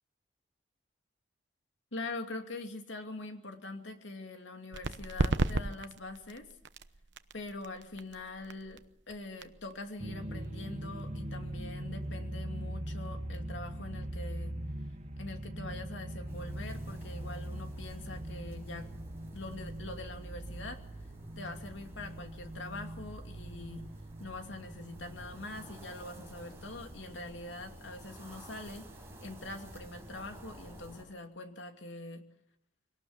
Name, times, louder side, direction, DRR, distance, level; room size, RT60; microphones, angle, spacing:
voice 1, 1.9-6.5 7.3-14.5 15.2-18.9 19.3-20.8 21.4-23.8 24.2-28.9 29.2-32.2, left 2 dB, 85° left, 5 dB, 2.6 m, -44 dB
sound 1, 4.7-12.1, right 2 dB, 70° right, 1.0 m, -37 dB
sound 2, 10.0-28.0, right 1 dB, 35° right, 1.2 m, -42 dB
sound 3, 16.3-31.0, right 1 dB, 15° right, 5.5 m, -52 dB
23.5 x 18.5 x 7.3 m, 0.74 s
head